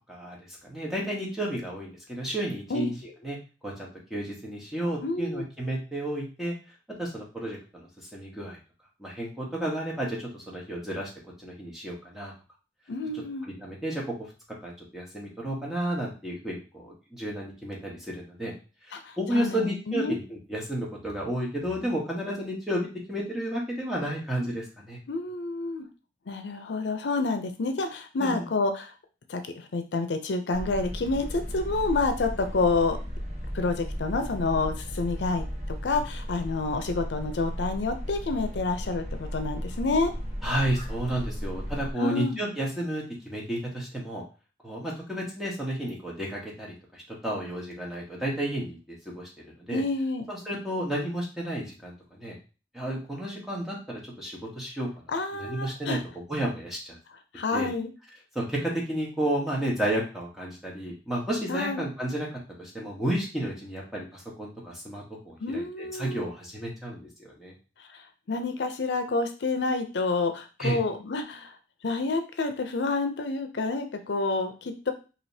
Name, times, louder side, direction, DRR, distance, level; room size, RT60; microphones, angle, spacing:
voice 1, 0.1-3.4 3.6-6.5 7.0-8.6 9.0-11.1 11.4-12.3 13.4-14.0 14.6-18.5 18.9-25.0 28.2-28.5 40.4-44.2 44.6-49.3 49.6-49.8 50.3-52.4 52.7-54.9 55.3-56.0 56.3-57.0 57.5-57.7 58.3-62.3 62.6-67.5 70.6-70.8, right 1 dB, ahead, -4 dB, 1.1 m, -32 dB
voice 2, 5.0-5.4 12.9-13.5 18.9-20.2 25.1-25.9 26.3-28.9 29.3-33.0 33.5-35.4 35.8-40.1 42.0-42.4 49.7-50.2 55.1-56.0 57.3-57.9 61.5-61.9 65.4-66.2 67.8-71.6 71.8-74.9, left 3 dB, 75° left, 6 dB, 0.5 m, -29 dB
sound 1, 30.5-41.9, equal, 40° right, 1.2 m, -35 dB
5.0 x 2.8 x 2.7 m, 0.33 s
head